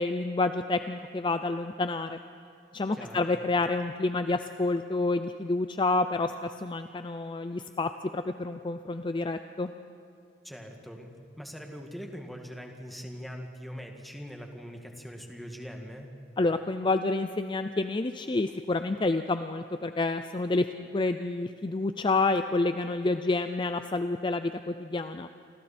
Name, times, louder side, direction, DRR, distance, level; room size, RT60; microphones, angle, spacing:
voice 1, 0.0-2.2 2.7-9.7 16.4-25.3, left 3 dB, 30° left, 9 dB, 0.5 m, -29 dB
voice 2, 2.9-3.3 10.4-11.1 11.4-16.1, equal, ahead, 2 dB, 2.0 m, -42 dB
29.0 x 25.5 x 4.4 m, 2.4 s
head